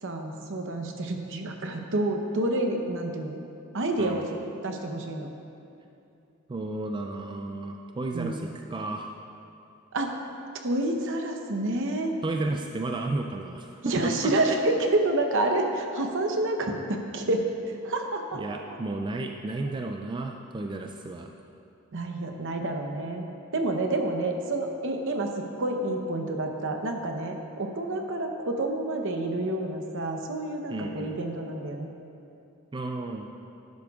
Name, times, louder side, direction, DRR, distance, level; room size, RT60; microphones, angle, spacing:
voice 1, 0.0-3.4 3.7-4.2 4.6-5.3 8.1-8.4 9.9-10.1 10.6-12.2 13.8-17.5 17.8-18.4 21.9-23.3 23.5-31.9, right 2 dB, 65° right, 4 dB, 0.9 m, -28 dB
voice 2, 4.0-4.4 6.5-9.1 12.2-14.3 18.3-21.3 30.7-31.2 32.7-33.3, right 2 dB, 20° right, 3 dB, 0.3 m, -33 dB
11.5 x 10.5 x 2.4 m, 2.7 s
head